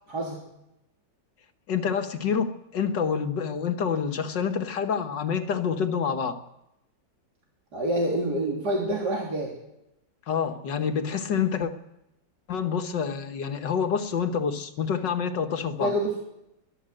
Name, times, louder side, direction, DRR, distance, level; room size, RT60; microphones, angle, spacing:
voice 1, 0.1-0.4 7.7-9.5 15.8-16.2, right 1 dB, 65° right, 3.9 m, -27 dB
voice 2, 1.7-6.4 10.3-11.7 12.5-15.9, left 6 dB, 80° left, 2.2 m, -27 dB
23.0 x 16.0 x 7.9 m
omnidirectional pair, 1.9 m